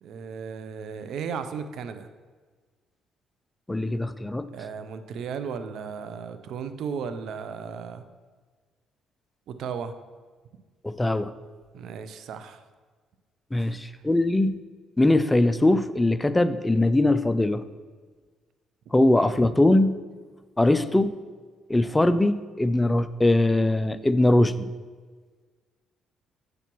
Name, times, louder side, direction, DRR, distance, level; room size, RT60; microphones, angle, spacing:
voice 1, 0.0-2.1 4.5-8.0 9.5-9.9 11.7-12.6 13.5-13.8 19.2-19.3, right 6 dB, 70° right, 10 dB, 0.4 m, -35 dB
voice 2, 3.7-4.5 10.8-11.3 13.5-14.6 15.0-17.6 18.9-20.0 20.6-21.2 21.7-24.7, left 1 dB, 15° left, 13 dB, 0.4 m, -21 dB
7.9 x 5.9 x 3.0 m, 1.5 s
supercardioid pair, 70°, 0 cm